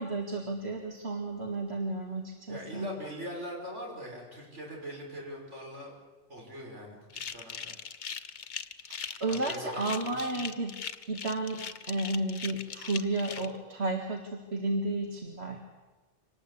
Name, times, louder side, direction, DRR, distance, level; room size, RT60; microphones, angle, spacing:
voice 1, 0.0-2.9 8.9-10.7 11.1-15.6, right 2 dB, 65° right, 2 dB, 2.1 m, -32 dB
voice 2, 2.5-5.9 6.3-7.9 9.3-10.4, equal, 80° right, -1 dB, 6.3 m, -42 dB
sound 1, 7.1-13.5, left 7 dB, 75° left, 1.3 m, -40 dB
25.5 x 19.0 x 8.3 m, 1.2 s
omnidirectional pair, 1.2 m